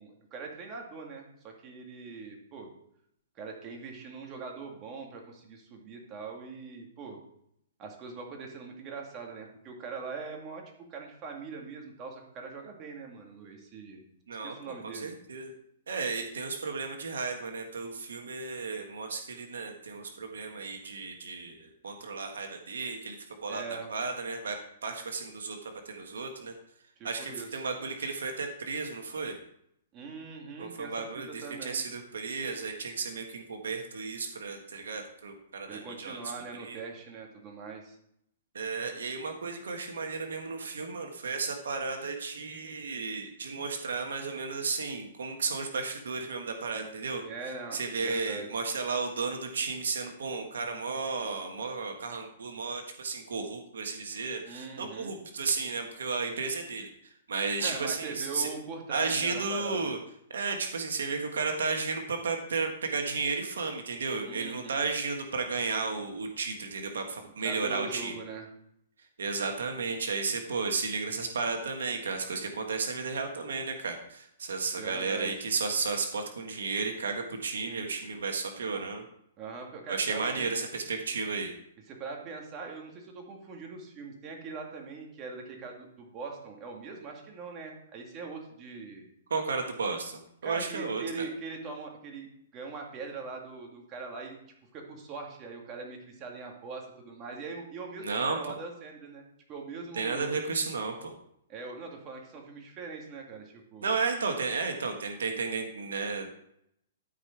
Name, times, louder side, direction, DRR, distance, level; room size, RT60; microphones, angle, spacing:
voice 1, 0.0-2.7 3.3-7.2 7.8-14.1 14.4-15.2 23.5-23.9 27.0-27.7 29.9-31.8 35.7-38.0 47.2-48.6 54.4-55.1 57.6-60.0 64.2-64.8 67.2-68.5 74.8-75.4 79.4-80.5 81.9-89.1 90.4-94.4 94.7-99.2 99.5-100.4 101.5-103.9, right 4 dB, 30° right, 1 dB, 2.3 m, -42 dB
voice 2, 14.3-15.5 15.9-23.6 23.9-24.6 24.8-26.5 27.0-29.4 30.6-36.2 36.6-36.8 38.5-47.2 47.7-56.9 57.3-58.5 58.9-60.0 60.3-68.1 69.2-79.0 79.9-81.5 89.3-91.3 98.0-98.4 99.9-101.1 103.8-106.3, right 4 dB, 85° right, 4 dB, 1.4 m, -33 dB
12.5 x 5.2 x 4.6 m, 0.73 s
hypercardioid pair, 135°, 0 cm